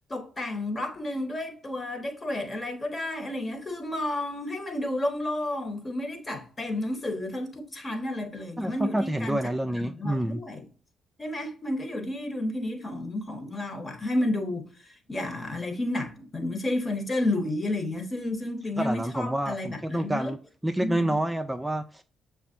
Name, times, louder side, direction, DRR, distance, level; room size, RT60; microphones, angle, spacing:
voice 1, 0.1-10.6 11.2-20.3 20.8-21.2, left 1 dB, 35° left, 1.2 m, -31 dB
voice 2, 8.6-10.4 18.8-20.4 20.6-22.0, right 1 dB, 10° right, 0.4 m, -28 dB
6.9 x 2.5 x 2.6 m
hypercardioid pair, 45°, 0 cm